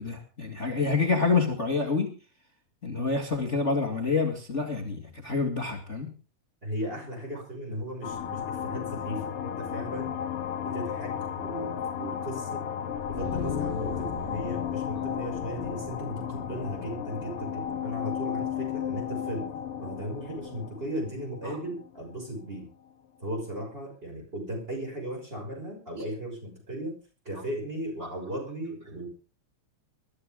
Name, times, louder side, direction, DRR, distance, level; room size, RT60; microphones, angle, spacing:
voice 1, 0.0-2.1 2.8-6.1 21.4-21.6 28.0-28.1, left 4 dB, 25° left, 3 dB, 2.0 m, -27 dB
voice 2, 6.6-10.1 10.6-12.7 13.1-19.5 19.8-22.7 23.2-27.0 27.2-29.1, right 1 dB, 15° right, 0 dB, 6.3 m, -36 dB
sound 1, 8.0-22.2, left 8 dB, 55° left, 2.0 m, -33 dB
21.5 x 13.0 x 3.7 m, 0.35 s
omnidirectional pair, 3.5 m